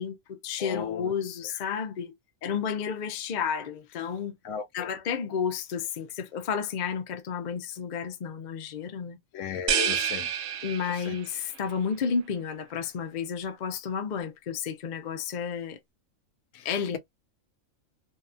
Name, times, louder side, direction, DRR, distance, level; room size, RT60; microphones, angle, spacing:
voice 1, 0.0-2.1 2.4-4.4 4.7-9.2 9.5-9.6 10.6-15.8 16.6-17.0, left 6 dB, 55° left, 0.5 m, -31 dB
voice 2, 0.6-1.1 4.4-4.9 9.3-10.3 11.1-11.2 16.5-16.7, left 7 dB, 70° left, 0.9 m, -35 dB
sound 1, 9.7-11.4, right 8 dB, 70° right, 0.9 m, -29 dB
2.7 x 2.3 x 2.4 m
omnidirectional pair, 1.4 m